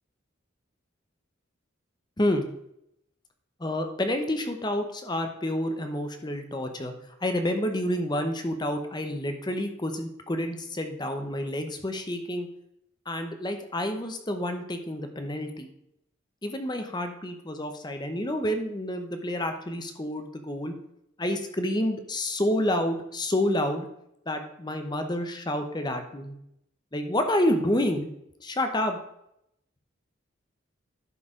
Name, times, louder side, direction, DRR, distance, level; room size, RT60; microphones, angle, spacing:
voice 1, 3.6-6.9 7.2-12.5 13.1-15.7 16.4-20.7 21.2-23.9 24.3-26.3 26.9-28.1 28.4-29.0, left 1 dB, 20° left, 6 dB, 0.8 m, -29 dB
11.0 x 4.7 x 4.9 m, 0.77 s
head